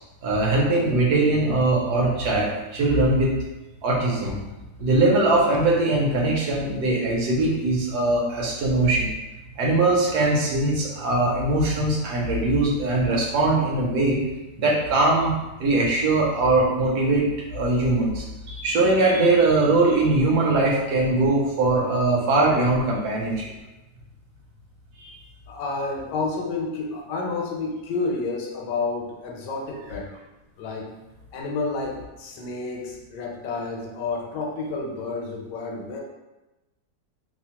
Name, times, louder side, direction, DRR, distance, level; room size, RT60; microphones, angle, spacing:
voice 1, 0.2-3.3 3.8-4.4 4.8-9.1 9.6-14.2 14.6-15.3 15.6-23.5 25.0-25.2, right 2 dB, 75° right, -3 dB, 1.1 m, -21 dB
voice 2, 25.5-30.1 30.6-30.9 31.3-36.0, left 3 dB, 80° left, 0 dB, 1.2 m, -30 dB
2.9 x 2.0 x 2.8 m, 1.0 s
omnidirectional pair, 1.9 m